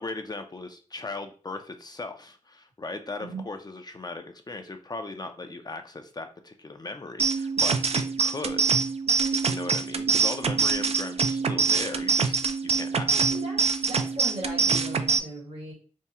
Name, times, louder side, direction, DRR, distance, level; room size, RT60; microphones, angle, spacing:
voice 1, 0.0-8.8 9.5-13.3, left 3 dB, 30° left, 6 dB, 0.5 m, -38 dB
sound 1, 7.2-15.2, right 5 dB, 55° right, 0.4 m, -25 dB
voice 2, 13.1-15.7, right 1 dB, 75° right, -6 dB, 1.6 m, -38 dB
3.6 x 2.1 x 4.1 m, 0.39 s
wide cardioid pair, 85°, 13 cm